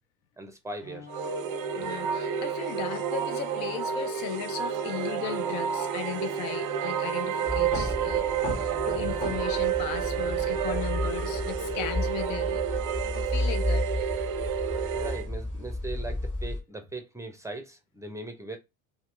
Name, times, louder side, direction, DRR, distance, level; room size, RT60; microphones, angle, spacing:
voice 1, 0.4-1.1 8.9-9.2 14.9-18.6, right 2 dB, 5° right, 0.7 m, -39 dB
Bowed string instrument, 0.8-12.0, left 4 dB, 85° left, 0.8 m, -48 dB
sound 1, 1.1-15.3, right 8 dB, 50° right, 0.6 m, -30 dB
voice 2, 1.7-8.3 8.5-12.6 13.1-14.1, left 9 dB, 60° left, 0.6 m, -37 dB
sound 2, 7.5-16.6, left 1 dB, 20° left, 1.7 m, -32 dB
2.8 x 2.2 x 3.2 m
hypercardioid pair, 75°, 40 cm